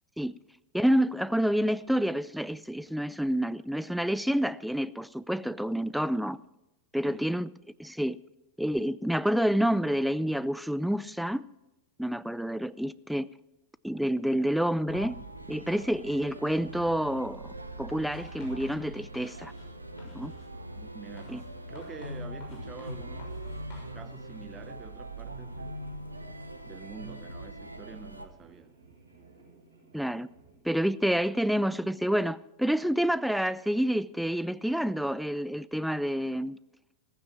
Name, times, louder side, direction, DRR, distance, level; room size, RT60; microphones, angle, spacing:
voice 1, 0.7-6.4 6.9-7.5 7.8-8.2 8.6-11.4 12.0-13.3 13.8-15.2 15.5-19.5 20.1-20.3 21.3-21.4 29.9-30.3 30.6-36.6, equal, ahead, 0.4 m, -28 dB
voice 2, 7.0-7.4 20.7-23.4 23.9-25.9 26.7-28.7, right 6 dB, 25° right, 0.8 m, -47 dB
sound 1, 14.9-30.6, right 4 dB, 65° right, 7.1 m, -56 dB
sound 2, 14.9-28.3, right 1 dB, 85° right, 1.1 m, -42 dB
Writing, 18.0-19.7 20.0-20.5 21.2-23.9, left 4 dB, 35° left, 6.4 m, -53 dB
15.5 x 15.0 x 4.6 m
figure-of-eight pair, 90°, 0 cm